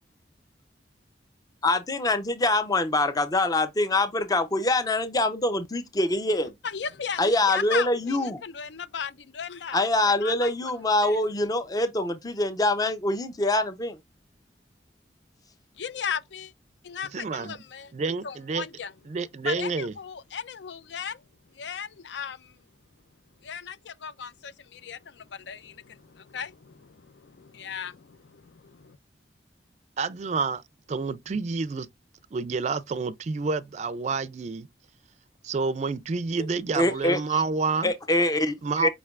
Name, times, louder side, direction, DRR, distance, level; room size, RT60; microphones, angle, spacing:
voice 1, 1.6-6.5 7.2-8.4 9.7-14.0 36.4-36.5 36.7-37.2 37.8-38.9, left 2 dB, 20° left, 0.5 m, -24 dB
voice 2, 6.6-9.8 10.1-10.7 11.0-11.2 15.8-16.5 16.8-17.9 18.2-18.9 19.4-21.2 21.5-22.6 23.4-29.0, left 7 dB, 80° left, 0.5 m, -36 dB
voice 3, 17.1-17.6 17.9-18.7 19.1-19.9 30.0-30.6 30.9-31.9 32.3-34.7 35.4-37.9 38.6-38.9, right 4 dB, 40° right, 0.3 m, -29 dB
5.0 x 3.2 x 2.4 m
head